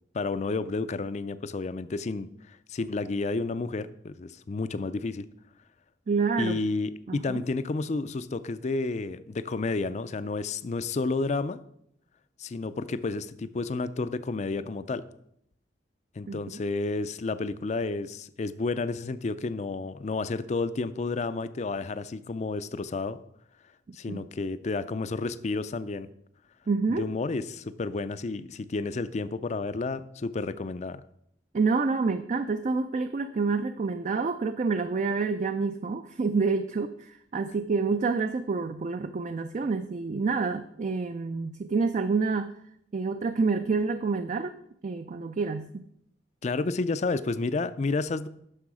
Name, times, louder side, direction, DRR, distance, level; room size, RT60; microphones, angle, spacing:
voice 1, 0.1-5.3 6.4-11.6 12.4-15.1 16.2-23.2 23.9-26.1 27.0-31.0 46.4-48.3, left 3 dB, 40° left, 14 dB, 0.4 m, -31 dB
voice 2, 6.1-6.6 7.1-7.4 16.3-16.6 24.1-24.2 26.7-27.0 31.5-42.6 42.9-44.6 44.8-45.8, right 4 dB, 40° right, 9 dB, 0.4 m, -28 dB
9.9 x 6.4 x 4.8 m, 0.73 s
head